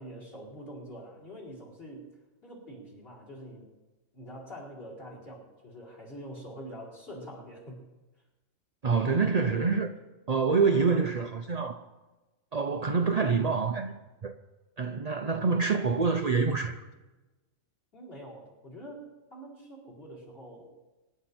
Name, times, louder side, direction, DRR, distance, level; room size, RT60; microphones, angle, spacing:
voice 1, 0.0-2.1 2.4-3.7 4.1-7.8 17.9-20.7, equal, 40° left, 4.9 m, -45 dB
voice 2, 8.8-10.0 10.3-11.8 12.5-14.3 14.8-16.8, right 5 dB, 40° right, 0.6 m, -26 dB
25.5 x 11.5 x 4.4 m
omnidirectional pair, 1.5 m